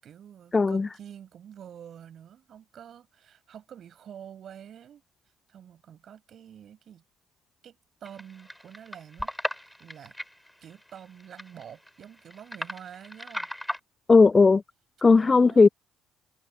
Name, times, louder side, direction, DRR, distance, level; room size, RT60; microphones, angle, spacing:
voice 1, 0.0-5.0 5.5-7.0 7.6-7.8 8.0-9.3 9.8-10.1 10.6-13.5 15.1-15.7, right 9 dB, 55° right, 6.0 m, -47 dB
voice 2, 0.5-0.9 14.1-14.6 15.0-15.7, left 4 dB, 25° left, 0.4 m, -17 dB
sound 1, 8.0-13.8, equal, 5° left, 5.3 m, -37 dB
supercardioid pair, 75°, 0 cm